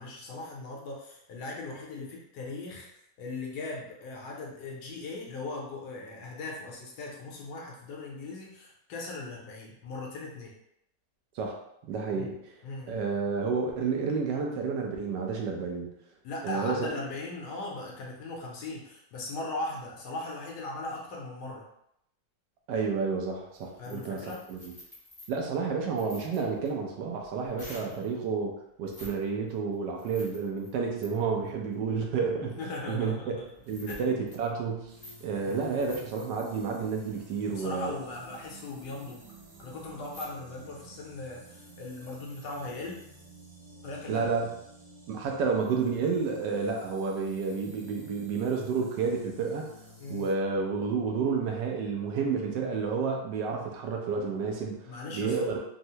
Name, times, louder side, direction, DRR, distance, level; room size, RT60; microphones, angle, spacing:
voice 1, 0.0-2.9 3.2-10.5 12.1-12.4 12.6-13.0 16.2-21.7 23.8-24.4 27.7-28.0 32.4-33.4 33.9-34.0 35.4-35.7 37.5-39.3 39.6-43.0 43.8-44.3 50.0-50.3 54.9-55.6, left 2 dB, 75° left, -2 dB, 1.2 m, -39 dB
voice 2, 11.9-12.3 12.9-15.9 16.4-16.9 22.7-24.2 24.5-24.7 25.3-32.5 32.9-33.4 33.7-34.9 35.2-37.9 44.1-44.5 45.1-49.7 50.1-54.8 55.1-55.6, right 5 dB, 80° right, 1 dB, 1.2 m, -30 dB
sound 1, 23.1-28.1 28.8-29.2 29.5-40.3, left 1 dB, 35° left, 0.3 m, -52 dB
sound 2, 34.9-50.3, right 2 dB, 55° right, 0.8 m, -52 dB
3.5 x 2.0 x 2.7 m, 0.77 s
omnidirectional pair, 1.9 m